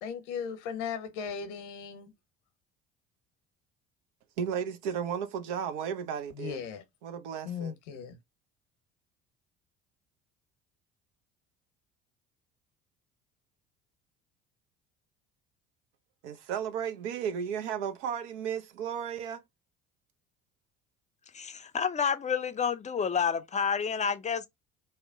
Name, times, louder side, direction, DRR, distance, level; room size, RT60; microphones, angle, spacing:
voice 1, 0.0-2.1 6.3-6.8 7.4-8.2, left 6 dB, 75° left, 0.8 m, -37 dB
voice 2, 4.4-6.6 7.0-7.8 16.2-19.4, right 8 dB, 75° right, 0.7 m, -34 dB
voice 3, 21.3-24.5, left 6 dB, 20° left, 0.5 m, -29 dB
2.8 x 2.1 x 3.6 m
hypercardioid pair, 60°, 36 cm